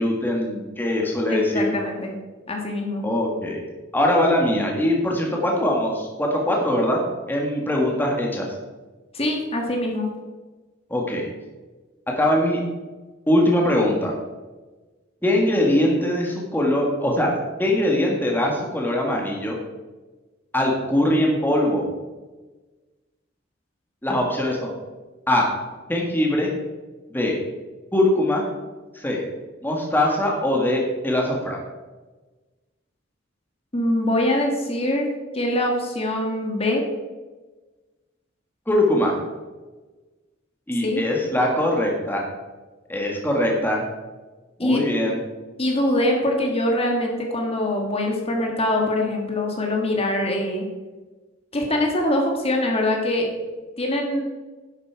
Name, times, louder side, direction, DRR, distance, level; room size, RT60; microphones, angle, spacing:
voice 1, 0.0-1.7 3.0-3.6 3.9-7.0 7.3-8.5 10.9-11.2 12.2-12.6 13.3-14.1 15.2-17.3 17.6-19.6 20.5-21.9 24.0-24.7 25.3-25.5 25.9-26.5 27.1-27.4 27.9-28.4 28.9-29.2 29.6-31.6 38.7-39.1 40.7-42.2 42.9-43.8 44.6-45.2, left 1 dB, 10° left, -1 dB, 1.7 m, -21 dB
voice 2, 1.3-2.1 2.5-3.0 9.1-10.1 33.7-35.1 35.3-36.8 40.8-41.0 44.6-44.8 45.6-50.7 51.5-53.3 53.8-54.2, left 1 dB, 30° left, 1 dB, 1.7 m, -23 dB
11.0 x 8.1 x 4.7 m, 1.2 s
head